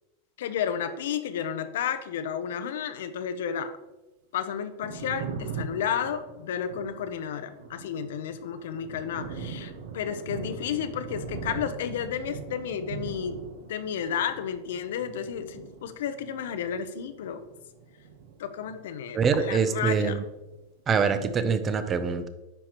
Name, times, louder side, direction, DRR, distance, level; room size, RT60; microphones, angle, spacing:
voice 1, 0.4-3.7 4.3-17.4 18.4-20.3, left 8 dB, 85° left, 10 dB, 0.7 m, -32 dB
Thunder, 4.6-19.0 19.3-20.6, right 5 dB, 75° right, 1.0 m, -41 dB
voice 2, 19.1-20.2 20.9-22.3, right 5 dB, 20° right, 10 dB, 0.5 m, -24 dB
9.9 x 5.9 x 3.0 m, 1.1 s
supercardioid pair, 155°, 0 cm